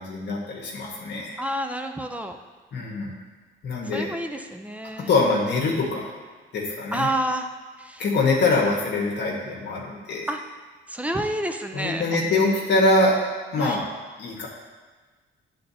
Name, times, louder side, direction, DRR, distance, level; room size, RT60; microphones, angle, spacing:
voice 1, 0.0-1.4 2.7-3.1 3.6-4.1 5.1-6.1 6.5-7.1 8.0-10.3 11.7-13.9 14.2-14.5, left 2 dB, 60° left, -3 dB, 1.3 m, -24 dB
voice 2, 1.4-2.4 3.9-5.1 6.9-7.5 7.8-8.0 10.3-10.4 10.9-12.0 13.6-13.8, right 1 dB, 5° right, 6 dB, 0.5 m, -29 dB
10.5 x 4.0 x 2.8 m, 1.4 s
cardioid pair, 90°, 20 cm